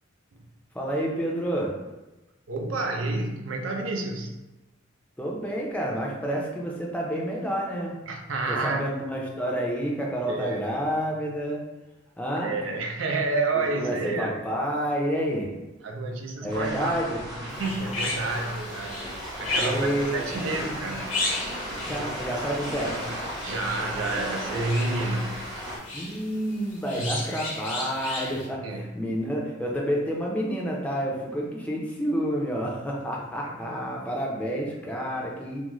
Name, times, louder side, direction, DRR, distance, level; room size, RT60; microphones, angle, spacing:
voice 1, 0.7-1.8 5.2-8.0 8.5-11.6 12.2-12.5 13.5-15.5 16.4-17.2 19.5-20.5 21.8-23.0 25.9-35.6, equal, 5° left, -2 dB, 0.5 m, -29 dB
voice 2, 2.5-4.4 8.1-8.9 10.3-10.6 12.4-14.4 15.8-17.0 17.5-21.1 23.4-25.4 27.0-27.1 28.6-28.9 33.4-33.8, right 3 dB, 80° right, 3 dB, 0.5 m, -30 dB
sound 1, 16.5-25.8, equal, 25° right, 0.7 m, -35 dB
sound 2, 17.5-28.5, left 2 dB, 85° left, 1.0 m, -35 dB
3.7 x 2.0 x 3.0 m, 1.1 s
head